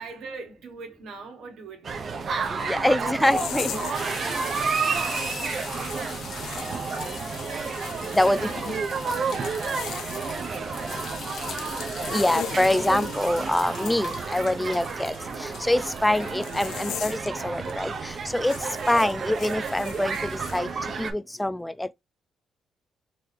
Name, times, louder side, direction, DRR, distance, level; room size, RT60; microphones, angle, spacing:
voice 1, 0.0-2.2 3.0-7.3 8.4-11.4, right 4 dB, 80° right, 1.4 m, -42 dB
sound 1, 1.8-21.1, right 5 dB, 50° right, 0.7 m, -31 dB
voice 2, 2.7-3.7 8.1-8.5 12.1-15.1 15.4-18.5 18.9-20.2 20.5-20.7 21.0-21.9, left 1 dB, 10° left, 0.3 m, -24 dB
sound 2, 3.2-4.0 4.3-8.4 9.5-10.2 11.5-13.2 13.8-14.0 16.4-17.3 17.6-17.8 18.4-20.6, left 10 dB, 80° left, 0.5 m, -39 dB
sound 3, 3.9-16.4, left 5 dB, 60° left, 1.3 m, -40 dB
3.9 x 3.2 x 2.8 m
cardioid pair, 90°, 0 cm